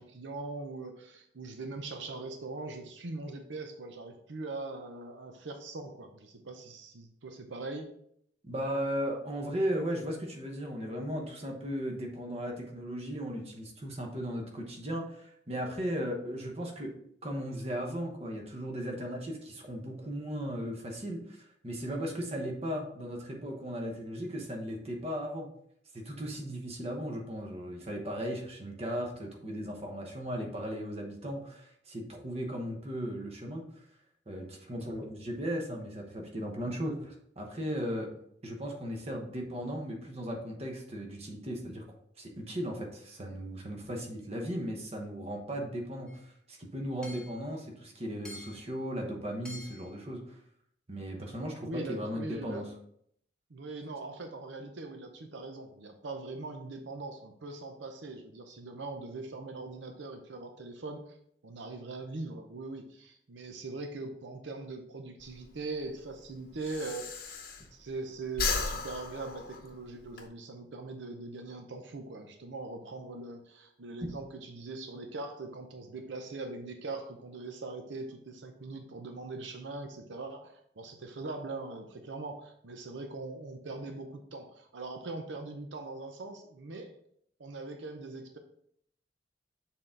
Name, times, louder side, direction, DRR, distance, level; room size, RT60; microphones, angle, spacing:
voice 1, 0.0-7.9 51.6-52.7 53.5-61.2 61.4-67.4 67.7-86.9 87.4-88.4, right 3 dB, 80° right, 5 dB, 0.7 m, -41 dB
voice 2, 8.4-16.9 17.2-25.5 25.9-33.6 34.3-38.1 38.4-41.8 42.2-50.4 50.9-52.6, equal, 35° right, 2 dB, 1.0 m, -36 dB
Hammer / Chink clink, 46.1-46.2 47.0-47.4 48.2-48.7 49.4-49.9, left 2 dB, 5° left, 1.1 m, -47 dB
Breathing, 65.2-68.0 68.3-70.2, left 4 dB, 55° left, 0.8 m, -35 dB
6.6 x 3.7 x 3.8 m, 0.70 s
head